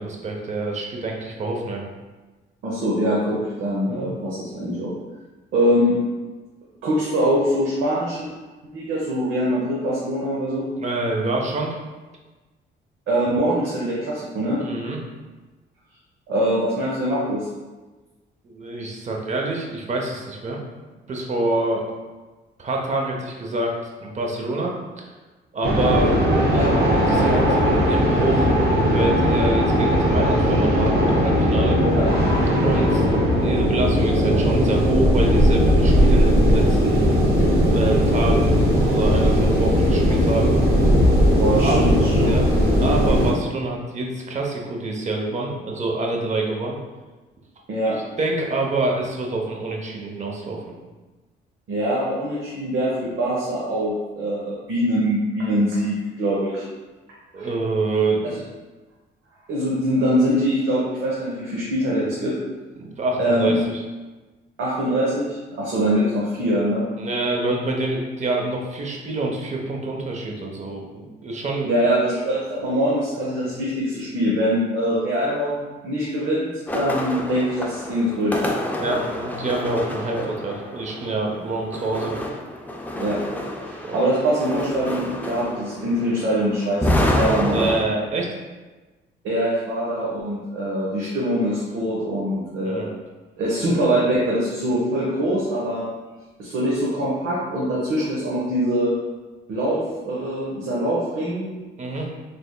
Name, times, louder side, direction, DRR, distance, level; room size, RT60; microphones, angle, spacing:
voice 1, 0.0-1.8 3.9-4.1 10.8-11.7 14.6-15.0 18.4-20.6 21.1-21.8 22.6-25.0 25.5-26.2 26.9-28.5 28.8-31.8 32.6-33.0 33.4-37.0 37.7-40.5 41.6-41.9 42.2-42.5 42.8-46.8 47.9-50.7 57.3-58.4 62.8-63.8 67.0-71.7 78.8-82.2 83.8-84.1 87.5-88.3 92.6-92.9 101.8-102.1, right 2 dB, 35° right, 0 dB, 0.7 m, -26 dB
voice 2, 2.6-4.9 5.5-6.0 6.8-8.3 8.7-10.7 13.1-14.6 16.3-17.5 26.5-26.7 31.8-32.1 41.3-42.3 47.7-48.0 51.7-56.6 57.3-57.5 58.2-58.4 59.5-62.4 63.2-63.6 64.6-66.9 71.7-78.4 80.2-80.3 83.0-83.2 83.6-87.7 89.2-92.9 93.4-95.9 96.4-98.9 99.5-101.5, equal, 80° right, -5 dB, 0.8 m, -23 dB
sound 1, 25.6-43.3, equal, 55° right, 1.1 m, -18 dB
sound 2, 76.7-87.8, left 1 dB, 10° left, 0.4 m, -28 dB
3.4 x 3.3 x 2.2 m, 1.2 s
cardioid pair, 90°, 20 cm